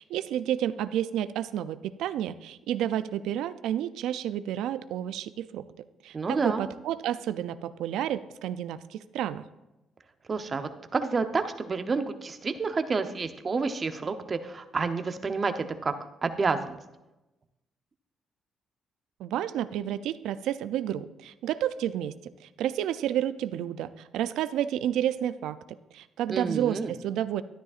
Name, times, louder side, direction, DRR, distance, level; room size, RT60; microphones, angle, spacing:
voice 1, 0.0-5.6 6.0-9.4 19.2-22.1 22.6-25.6 25.9-27.4, right 11 dB, 90° right, 14 dB, 0.4 m, -30 dB
voice 2, 6.1-6.6 10.3-15.9 16.2-16.8 26.3-26.9, right 4 dB, 35° right, 9 dB, 0.8 m, -29 dB
12.0 x 10.5 x 2.5 m, 0.98 s
cardioid pair, 90°, 0 cm